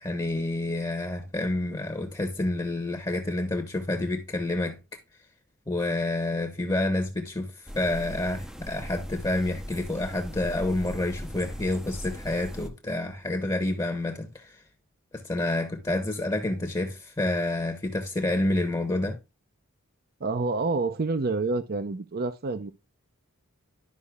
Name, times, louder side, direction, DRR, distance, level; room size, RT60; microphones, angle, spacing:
voice 1, 0.0-4.8 5.7-14.6 15.1-19.2, left 2 dB, 20° left, 0.9 m, -28 dB
sound 1, 7.7-12.7, equal, 5° right, 0.6 m, -39 dB
voice 2, 20.2-22.7, right 3 dB, 45° right, 0.6 m, -28 dB
11.5 x 5.3 x 2.3 m
head